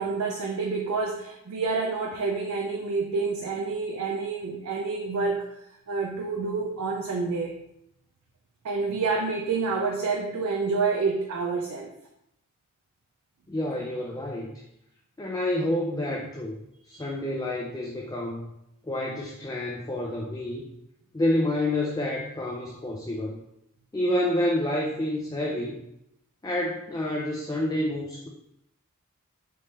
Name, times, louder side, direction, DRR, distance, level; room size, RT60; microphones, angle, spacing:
voice 1, 0.0-5.4 5.9-7.6 8.6-11.9 16.9-17.1, right 4 dB, 80° right, 0 dB, 0.4 m, -28 dB
voice 2, 13.5-14.5 15.2-16.6 16.9-18.5 18.9-20.6 21.1-23.4 23.9-25.8 26.4-28.3, left 1 dB, 15° left, -2 dB, 0.3 m, -28 dB
3.3 x 3.1 x 2.8 m, 0.80 s
head